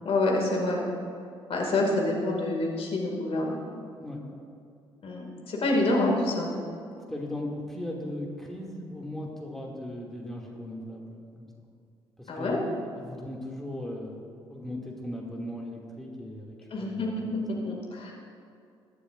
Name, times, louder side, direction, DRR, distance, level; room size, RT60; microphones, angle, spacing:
voice 1, 0.0-0.8 1.5-3.6 5.0-6.5 12.3-12.6 16.7-17.2 17.6-18.1, left 2 dB, 45° left, -1 dB, 2.4 m, -27 dB
voice 2, 7.1-11.5 12.2-17.3, left 1 dB, ahead, -2 dB, 2.5 m, -38 dB
21.5 x 11.5 x 2.6 m, 2.4 s
figure-of-eight pair, 45°, 13 cm